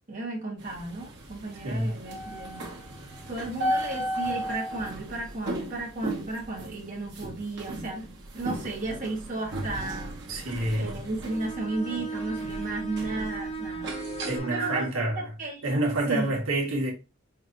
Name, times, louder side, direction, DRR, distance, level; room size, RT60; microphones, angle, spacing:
voice 1, 0.1-2.7 3.3-10.2 10.8-14.0 14.5-15.8 16.1-16.4, right 2 dB, 40° right, 1.9 m, -34 dB
sound 1, 0.6-14.4, right 1 dB, 55° right, 1.6 m, -36 dB
voice 2, 10.3-11.0 14.3-15.2 15.6-16.9, right 1 dB, 75° right, 1.9 m, -28 dB
Bowed string instrument, 11.2-15.0, right 4 dB, 30° left, 0.9 m, -36 dB
5.8 x 3.2 x 2.7 m
head